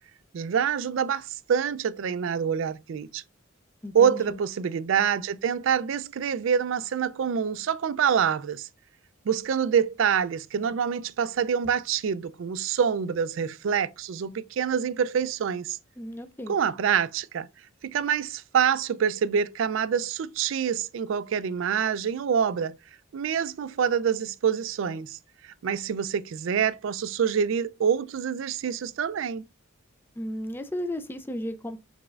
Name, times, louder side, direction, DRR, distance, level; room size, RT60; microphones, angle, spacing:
voice 1, 0.3-3.2 3.9-8.7 9.3-15.8 16.5-17.5 17.8-22.7 23.1-25.2 25.4-29.5, right 7 dB, 65° right, 0.3 m, -26 dB
voice 2, 3.8-4.4 16.0-16.6 30.2-31.8, left 1 dB, 10° left, 0.3 m, -34 dB
5.0 x 3.5 x 2.4 m
head